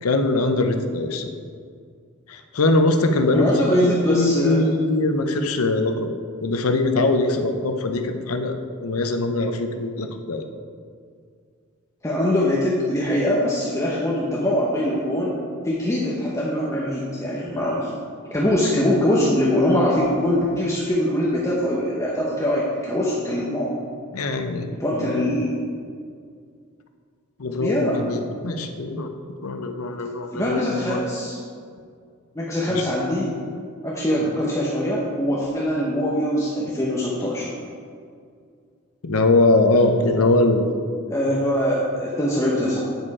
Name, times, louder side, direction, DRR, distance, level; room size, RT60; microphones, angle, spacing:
voice 1, 0.0-1.3 2.3-6.1 6.4-10.5 24.1-24.7 25.0-25.3 27.4-29.1 29.4-31.0 32.7-32.8 34.2-34.3 39.0-40.6, left 2 dB, 80° left, 6 dB, 0.7 m, -22 dB
voice 2, 3.3-4.6 12.0-15.4 15.6-17.9 18.3-23.7 24.8-25.5 27.6-28.0 30.3-31.4 32.3-33.3 33.8-37.5 41.1-42.8, left 1 dB, 15° left, -5 dB, 0.8 m, -22 dB
9.3 x 5.1 x 4.8 m, 2.2 s
head